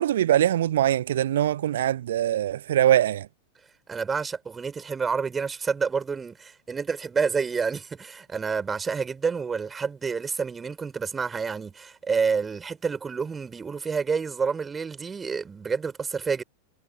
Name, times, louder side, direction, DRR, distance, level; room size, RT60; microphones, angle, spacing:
voice 1, 0.0-3.3, right 11 dB, 60° right, 0.9 m, -22 dB
voice 2, 3.9-16.4, right 5 dB, 15° right, 5.2 m, -28 dB
figure-of-eight pair, 90°, 0 cm